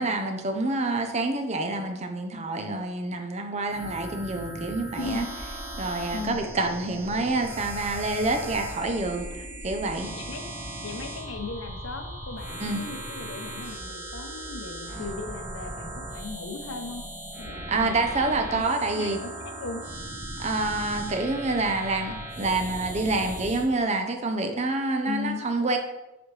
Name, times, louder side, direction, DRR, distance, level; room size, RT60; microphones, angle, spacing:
voice 1, 0.0-5.3 5.8-10.1 12.6-12.8 14.9-15.1 17.7-19.2 20.4-25.8, right 2 dB, 35° right, 5 dB, 0.7 m, -27 dB
sound 1, 3.7-23.7, right 1 dB, 10° right, 1.2 m, -38 dB
voice 2, 4.9-5.3 6.1-6.4 10.1-10.5 10.8-17.0 17.4-18.1 18.5-19.8 25.0-25.4, left 4 dB, 85° left, 6 dB, 0.8 m, -37 dB
7.0 x 4.2 x 3.3 m, 1.0 s
head